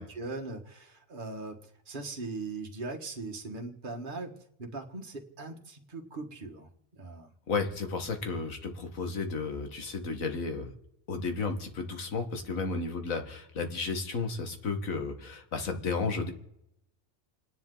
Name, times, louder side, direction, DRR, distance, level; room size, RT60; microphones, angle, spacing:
voice 1, 0.0-7.3, right 3 dB, 40° right, 1 dB, 1.8 m, -40 dB
voice 2, 7.5-10.7 11.1-16.3, left 4 dB, 80° left, 6 dB, 2.0 m, -33 dB
28.0 x 10.5 x 3.9 m, 0.81 s
omnidirectional pair, 1.4 m